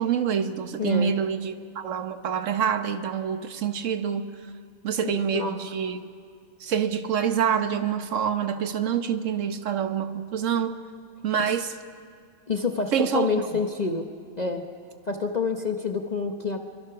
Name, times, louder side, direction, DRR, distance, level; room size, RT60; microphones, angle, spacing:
voice 1, 0.0-4.3 4.8-6.1 6.6-10.8 11.2-11.7 12.9-13.6, right 8 dB, 70° right, 9 dB, 1.3 m, -26 dB
voice 2, 0.8-1.1 5.0-5.6 11.5-11.6 12.5-14.1 14.4-14.6 15.1-16.7, left 4 dB, 35° left, 4 dB, 1.0 m, -28 dB
25.5 x 24.0 x 6.0 m, 2.2 s
omnidirectional pair, 1.4 m